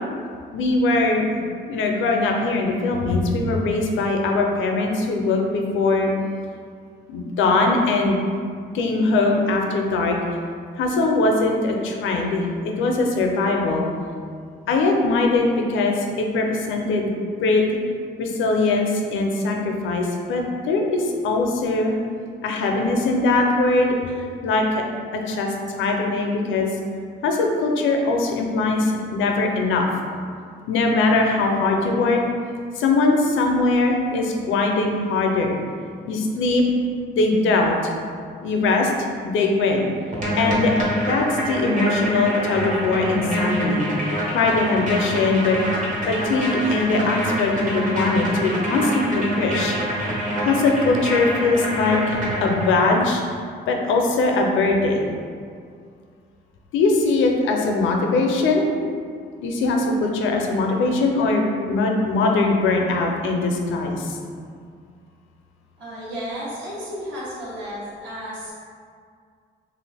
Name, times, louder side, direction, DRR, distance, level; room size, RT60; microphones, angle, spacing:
voice 1, 0.5-1.3 1.7-6.1 7.1-8.2 8.7-10.2 10.8-13.9 14.7-17.1 17.4-17.6 18.2-21.9 22.4-24.8 25.1-26.7 27.2-29.9 30.7-32.2 32.7-35.6 36.1-36.7 37.1-37.9 38.4-38.9 39.2-39.9 40.4-40.7 41.1-43.8 44.3-45.6 46.1-49.8 50.1-50.2 50.4-53.2 53.7-55.1 56.7-58.7 59.4-64.2, left 3 dB, 80° left, 2 dB, 0.5 m, -21 dB
sound 1, 40.1-52.9, right 1 dB, 40° right, 0.8 m, -26 dB
voice 2, 65.8-68.5, equal, 70° right, -9 dB, 1.1 m, -33 dB
2.8 x 2.4 x 3.3 m, 2.2 s
cardioid pair, 90°, 20 cm